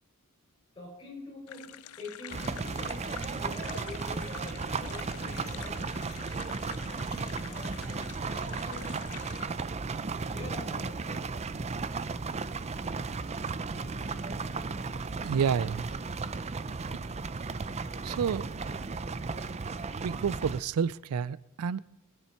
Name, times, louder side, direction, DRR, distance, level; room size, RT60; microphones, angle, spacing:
voice 1, 0.7-1.7 2.0-6.0 6.8-8.9 10.3-11.3, left 2 dB, 25° left, 5.8 m, -45 dB
sound 1, 1.5-9.5, left 11 dB, 85° left, 0.5 m, -47 dB
sound 2, 2.3-20.6, right 4 dB, 30° right, 0.5 m, -35 dB
voice 2, 15.2-15.9 16.9-17.0 18.0-18.6 20.0-21.8, right 7 dB, 80° right, 0.4 m, -30 dB
20.5 x 10.0 x 4.4 m
head